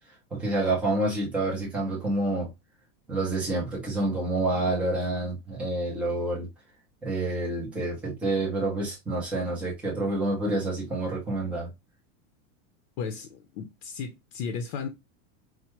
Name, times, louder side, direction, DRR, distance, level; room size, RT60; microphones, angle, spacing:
voice 1, 0.3-2.5 3.1-6.5 7.0-11.7, right 2 dB, 5° right, 0.3 m, -28 dB
voice 2, 13.0-14.9, left 6 dB, 50° left, 0.6 m, -35 dB
4.5 x 2.1 x 2.9 m
supercardioid pair, 165°, 45 cm